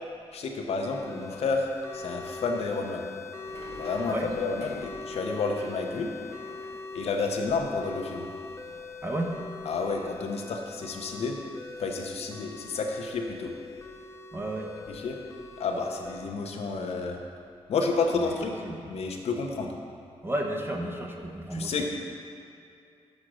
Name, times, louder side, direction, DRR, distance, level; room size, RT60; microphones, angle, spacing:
voice 1, 0.3-3.0 3.7-6.1 6.9-8.3 9.6-11.4 11.8-13.5 14.9-15.2 15.6-17.2 17.7-18.5 18.9-19.8 21.5-21.9, left 4 dB, 70° left, 2 dB, 0.8 m, -30 dB
sound 1, 0.8-16.4, left 4 dB, 25° left, 0.5 m, -42 dB
sound 2, 3.5-10.2 10.5-11.8, right 2 dB, 65° right, 1.2 m, -50 dB
voice 2, 9.0-9.4 14.3-14.7 18.1-18.3 18.6-18.8 20.2-21.9, right 1 dB, 20° right, 2 dB, 0.8 m, -32 dB
6.3 x 5.0 x 6.2 m, 2.5 s
cardioid pair, 90°, 11 cm